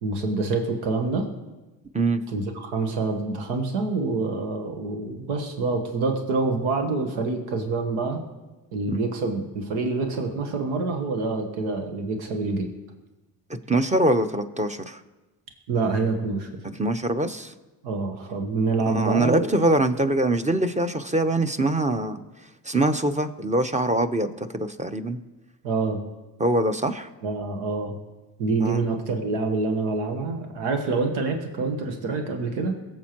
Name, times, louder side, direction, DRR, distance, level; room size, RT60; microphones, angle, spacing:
voice 1, 0.0-1.3 2.3-8.2 8.7-12.7 15.7-16.5 17.8-19.5 25.6-26.0 27.2-28.0 28.4-32.7, right 3 dB, 85° right, 5 dB, 1.3 m, -26 dB
voice 2, 13.7-15.0 16.8-17.5 18.9-22.2 22.6-25.2 26.4-27.1 28.6-28.8, right 1 dB, 15° right, 10 dB, 0.9 m, -23 dB
22.5 x 7.5 x 3.0 m, 1.1 s
hypercardioid pair, 55°, 48 cm